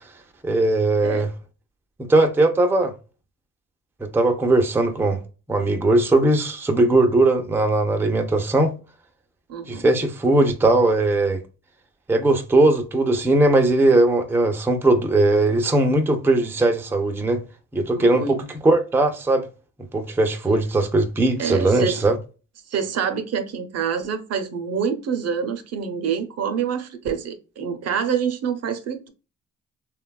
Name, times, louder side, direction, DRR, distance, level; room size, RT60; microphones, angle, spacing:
voice 1, 0.4-1.3 2.0-2.9 4.0-5.2 5.5-8.7 9.7-11.4 12.1-17.4 17.7-19.5 19.9-22.2, right 2 dB, 10° right, 0.4 m, -19 dB
voice 2, 9.5-9.8 17.9-18.4 21.4-22.0 22.7-29.1, right 7 dB, 55° right, 0.6 m, -26 dB
3.2 x 2.2 x 2.2 m
cardioid pair, 90°, 30 cm